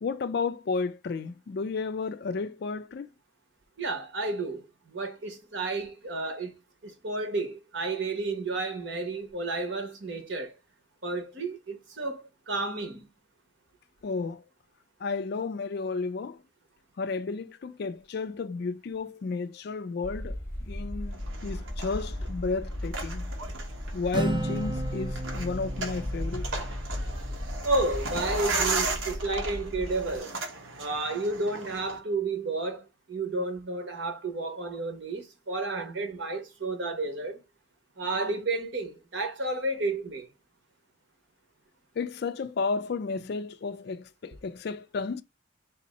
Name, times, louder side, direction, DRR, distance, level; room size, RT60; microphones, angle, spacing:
voice 1, 0.0-3.1 14.0-14.4 15.0-16.4 17.0-23.3 23.9-26.5 42.0-45.2, left 4 dB, 50° left, 0.3 m, -32 dB
voice 2, 3.8-6.5 6.8-10.6 11.0-13.1 27.6-30.3 30.8-37.4 38.0-40.3, right 2 dB, 65° right, 1.1 m, -31 dB
sound 1, 20.0-30.2, left 1 dB, 15° left, 0.8 m, -36 dB
sound 2, 21.1-32.0, right 3 dB, 85° right, 1.1 m, -36 dB
Acoustic guitar, 24.1-27.8, right 1 dB, 25° right, 0.5 m, -34 dB
3.5 x 2.7 x 4.1 m
head